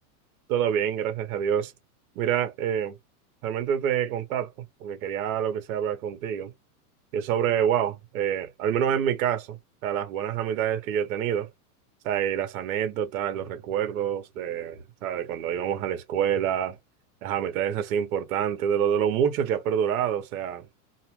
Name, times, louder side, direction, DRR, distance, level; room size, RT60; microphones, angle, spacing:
voice 1, 0.5-1.7 2.1-2.9 3.4-4.5 4.8-6.5 7.1-9.6 9.8-11.5 12.0-16.8 17.2-20.7, right 9 dB, 65° right, 1.2 m, -27 dB
2.7 x 2.4 x 3.1 m
supercardioid pair, 155°, 46 cm